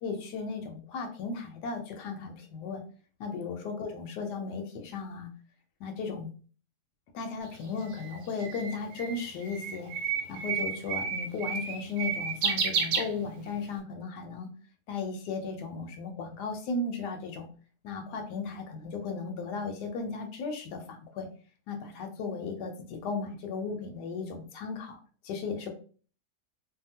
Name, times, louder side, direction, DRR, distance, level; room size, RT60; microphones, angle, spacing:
voice 1, 0.0-2.8 3.2-5.3 5.8-6.3 7.1-10.0 10.3-14.5 14.9-17.5 17.8-21.3 21.7-25.7, left 4 dB, 80° left, 4 dB, 1.2 m, -36 dB
Bird, 7.5-13.7, right 6 dB, 80° right, 1.2 m, -32 dB
2.8 x 2.4 x 2.7 m, 0.40 s
omnidirectional pair, 1.8 m